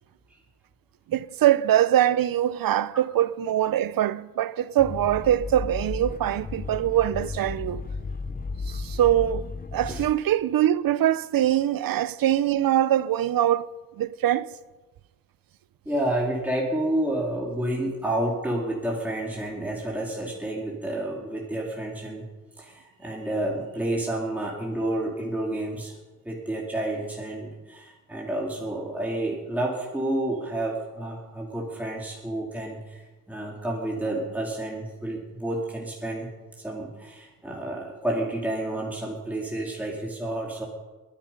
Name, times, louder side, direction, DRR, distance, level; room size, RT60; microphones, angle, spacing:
voice 1, 1.1-7.9 8.7-13.7 14.0-14.5, right 12 dB, 80° right, 0.7 m, -23 dB
sound 1, 4.8-10.1, left 4 dB, 25° left, 0.7 m, -34 dB
voice 2, 15.9-22.3 22.6-25.9 26.2-33.0 33.3-40.7, right 1 dB, 5° right, 2.4 m, -30 dB
21.5 x 10.5 x 5.3 m
wide cardioid pair, 125°, 35 cm